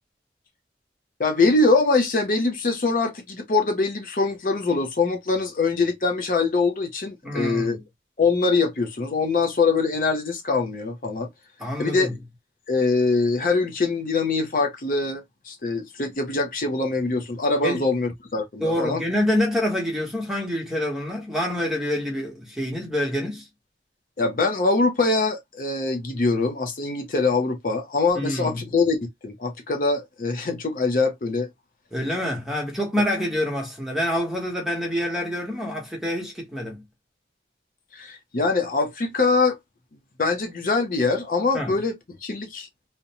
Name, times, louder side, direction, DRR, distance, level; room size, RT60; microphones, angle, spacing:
voice 1, 1.2-7.8 8.2-11.3 11.8-12.2 12.7-19.0 24.2-31.5 37.9-39.6 40.2-41.9 42.2-42.7, left 3 dB, 50° left, 0.5 m, -23 dB
voice 2, 7.2-7.8 11.6-12.1 17.6-17.8 18.6-23.5 28.1-28.6 31.9-36.8 41.5-41.8, left 1 dB, ahead, 0.9 m, -26 dB
2.5 x 2.1 x 2.7 m
head